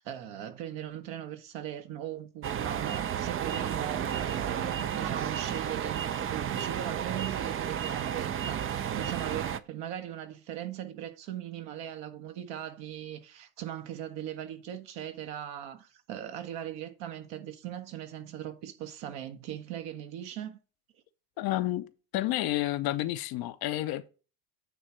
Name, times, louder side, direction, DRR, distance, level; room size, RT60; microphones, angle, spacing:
voice 1, 0.0-20.6, right 11 dB, 60° right, 1.4 m, -39 dB
sound 1, 2.4-9.6, right 9 dB, 30° right, 0.6 m, -32 dB
voice 2, 21.4-24.1, left 15 dB, 50° left, 0.7 m, -30 dB
9.1 x 3.4 x 5.0 m
hypercardioid pair, 70°, 47 cm